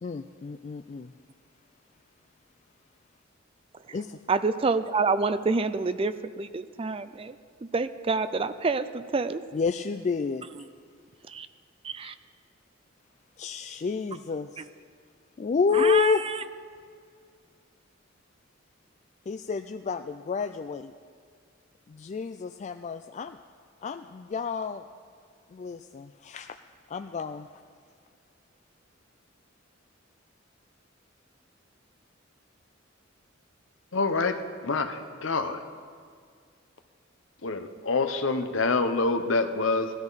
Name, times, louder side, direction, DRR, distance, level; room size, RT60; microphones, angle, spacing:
voice 1, 0.0-1.1 3.9-4.2 9.5-10.5 13.4-14.7 15.4-16.3 19.3-20.9 21.9-23.4 23.8-24.8 25.5-26.6 26.9-27.5, left 5 dB, 35° left, 8 dB, 0.3 m, -29 dB
voice 2, 4.3-7.3 7.7-9.4 11.3-11.5 11.8-12.1 15.7-16.1, right 4 dB, 30° right, 12 dB, 0.4 m, -27 dB
voice 3, 33.9-35.6 37.4-39.9, left 3 dB, 75° left, 8 dB, 0.9 m, -26 dB
19.0 x 13.0 x 4.1 m, 2.1 s
head